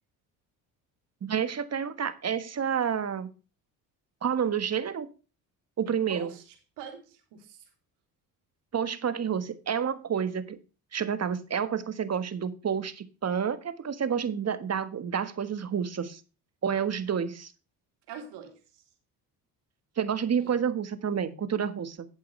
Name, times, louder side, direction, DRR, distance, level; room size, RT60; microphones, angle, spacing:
voice 1, 1.2-3.3 4.2-5.1 5.8-6.3 8.7-10.6 10.9-16.2 16.6-17.5 20.0-22.1, right 7 dB, 40° right, 12 dB, 1.5 m, -29 dB
voice 2, 5.9-7.7 18.1-18.8 20.4-20.5, right 8 dB, 80° right, 4 dB, 3.5 m, -44 dB
12.0 x 8.3 x 3.3 m, 0.33 s
supercardioid pair, 80°, 40 cm